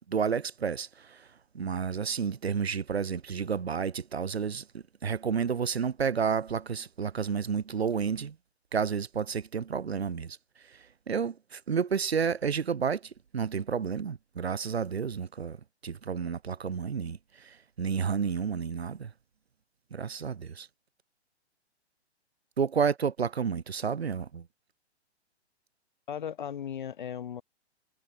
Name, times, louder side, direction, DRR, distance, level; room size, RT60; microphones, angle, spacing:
voice 1, 0.1-1.3 1.5-8.4 8.7-10.4 10.6-15.6 15.8-19.1 19.9-20.7 22.6-24.5, right 6 dB, 65° right, 1.2 m, -31 dB
voice 2, 26.1-27.4, left 8 dB, 45° left, 0.8 m, -36 dB
figure-of-eight pair, 125°, 34 cm